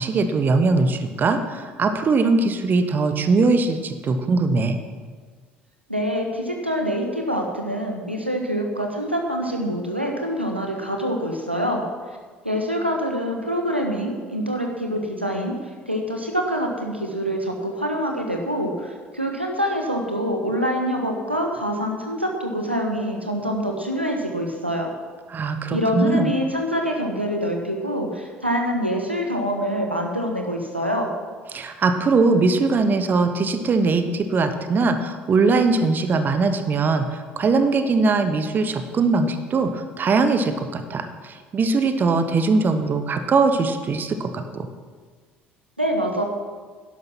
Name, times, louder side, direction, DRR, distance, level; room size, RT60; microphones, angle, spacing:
voice 1, 0.0-4.8 25.3-26.3 31.5-44.7, right 3 dB, 35° right, 8 dB, 1.2 m, -21 dB
voice 2, 5.9-11.8 12.4-15.5 15.9-24.9 25.7-31.1 45.8-46.2, equal, 90° right, 2 dB, 1.3 m, -25 dB
11.5 x 10.5 x 6.1 m, 1.5 s
figure-of-eight pair, 60°, 6 cm